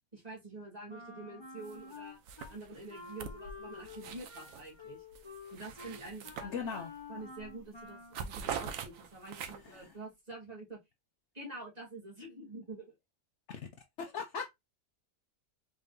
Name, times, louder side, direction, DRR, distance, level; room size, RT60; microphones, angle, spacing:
voice 1, 0.1-5.0 5.5-6.8 7.1-10.8 11.3-12.9, right 2 dB, 30° right, 1.5 m, -47 dB
Wind instrument woodwind instrument, 0.9-2.5 2.9-8.2, left 4 dB, 30° left, 0.5 m, -49 dB
sound 1, 1.6-2.0 2.3-4.7 5.1-7.0 7.4-7.6 7.9-9.8, right 7 dB, 70° right, 1.0 m, -43 dB
voice 2, 6.4-6.9 9.7-9.9 14.0-14.5, left 6 dB, 65° left, 0.8 m, -38 dB
3.8 x 3.5 x 2.6 m
omnidirectional pair, 1.5 m